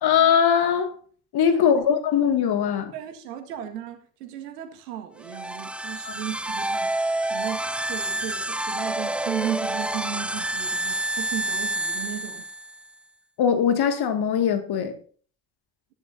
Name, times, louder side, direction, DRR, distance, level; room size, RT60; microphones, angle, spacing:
voice 1, 0.0-0.9 1.3-2.9 6.1-6.2 13.4-15.0, left 8 dB, 50° left, 2.2 m, -21 dB
voice 2, 2.9-6.9 7.3-12.4, right 10 dB, 80° right, 1.9 m, -35 dB
sound 1, 5.2-12.9, right 1 dB, 5° right, 0.5 m, -28 dB
16.0 x 11.0 x 2.7 m
hypercardioid pair, 60°, 47 cm